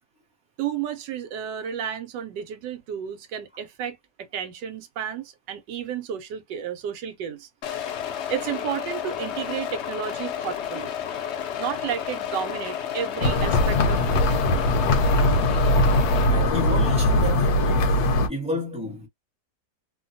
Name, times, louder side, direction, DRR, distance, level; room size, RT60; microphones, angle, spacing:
voice 1, 0.6-7.5 8.3-10.9 11.6-14.5, right 9 dB, 85° right, 1.3 m, -32 dB
sound 1, 7.6-16.3, left 9 dB, 85° left, 0.6 m, -31 dB
sound 2, 13.2-18.3, left 1 dB, 70° left, 1.0 m, -20 dB
voice 2, 16.3-19.1, left 1 dB, 5° right, 0.8 m, -31 dB
3.0 x 2.2 x 2.6 m
omnidirectional pair, 1.9 m